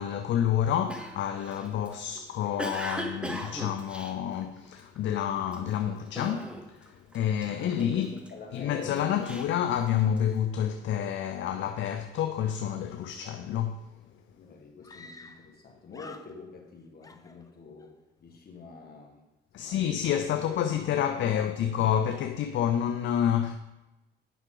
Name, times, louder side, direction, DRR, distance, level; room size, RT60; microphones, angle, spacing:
voice 1, 0.0-8.1 8.5-13.9 19.5-23.6, left 9 dB, 70° left, 0.5 m, -29 dB
Cough, 0.9-5.0 5.5-5.8 6.2-6.9 7.1-8.3 8.8-10.3, equal, 5° right, 1.0 m, -38 dB
voice 2, 7.4-9.1 14.3-17.9 18.2-19.3 19.5-20.2 20.5-20.6 21.2-21.7, left 4 dB, 50° left, 1.6 m, -47 dB
Screaming, 14.0-14.1 14.8-15.6 15.9-16.7 17.0-17.9, left 3 dB, 15° left, 0.5 m, -50 dB
9.2 x 5.9 x 3.8 m
cardioid pair, 90°, 20 cm